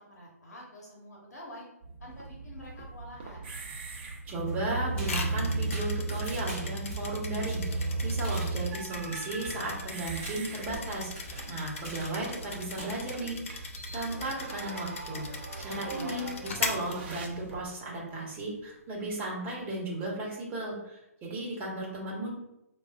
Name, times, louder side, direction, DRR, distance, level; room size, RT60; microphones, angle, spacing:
voice 1, 0.1-1.7 2.0-3.5 15.7-16.1, equal, 80° left, -3 dB, 1.0 m, -46 dB
sound 1, 1.8-17.7, right 3 dB, 40° right, 0.6 m, -37 dB
voice 2, 4.3-15.3 15.6-22.3, right 2 dB, 20° right, -4 dB, 1.0 m, -35 dB
sound 2, 4.4-13.0, right 1 dB, 15° left, 1.2 m, -45 dB
sound 3, 5.0-17.7, left 4 dB, 55° left, 0.5 m, -40 dB
4.6 x 2.4 x 2.3 m, 0.84 s
hypercardioid pair, 140°, 9 cm